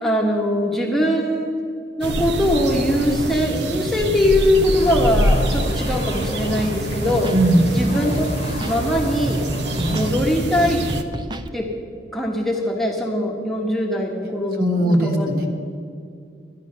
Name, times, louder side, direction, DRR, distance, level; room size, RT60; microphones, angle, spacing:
voice 1, 0.0-1.5 2.0-7.3 7.7-8.3 8.7-9.4 9.9-10.8 11.5-11.7 12.1-15.3, left 1 dB, ahead, -1 dB, 1.2 m, -21 dB
sound 1, 2.0-11.0, right 1 dB, 70° right, 0.9 m, -25 dB
sound 2, 4.7-10.2, equal, 35° left, 1.1 m, -30 dB
Scratching (performance technique), 6.6-6.7 7.0-7.4 7.8-8.8 9.3-9.4 9.7-10.1 10.6-11.5, right 1 dB, 25° right, 0.5 m, -31 dB
voice 2, 7.3-7.7 9.8-10.0 14.6-15.5, right 1 dB, 50° right, 2 dB, 1.7 m, -19 dB
13.0 x 10.5 x 6.6 m, 2.4 s
head